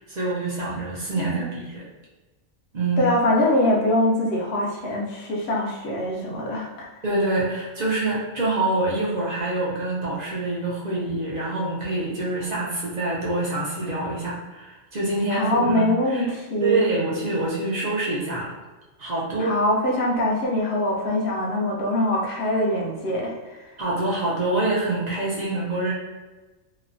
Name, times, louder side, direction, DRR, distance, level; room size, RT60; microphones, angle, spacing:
voice 1, 0.0-1.8 2.7-3.1 7.0-16.3 16.6-18.6 19.0-19.6 23.8-25.9, right 2 dB, 50° right, -5 dB, 0.5 m, -26 dB
voice 2, 1.2-1.6 3.0-6.9 15.3-16.9 19.4-23.3, left 1 dB, 65° left, -2 dB, 0.8 m, -23 dB
3.0 x 2.0 x 2.5 m, 1.2 s
omnidirectional pair, 1.2 m